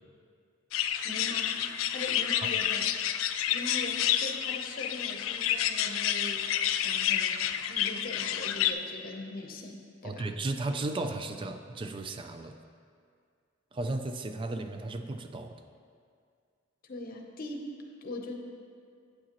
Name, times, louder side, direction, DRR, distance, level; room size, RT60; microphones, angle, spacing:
sound 1, 0.7-8.7, left 10 dB, 75° left, 0.3 m, -29 dB
voice 1, 1.0-2.9 3.5-6.5 6.8-10.3 16.8-18.3, left 2 dB, 45° left, 2 dB, 0.8 m, -41 dB
voice 2, 10.0-12.6 13.7-15.6, right 2 dB, 25° right, 7 dB, 0.3 m, -35 dB
8.5 x 8.4 x 3.0 m, 2.2 s
head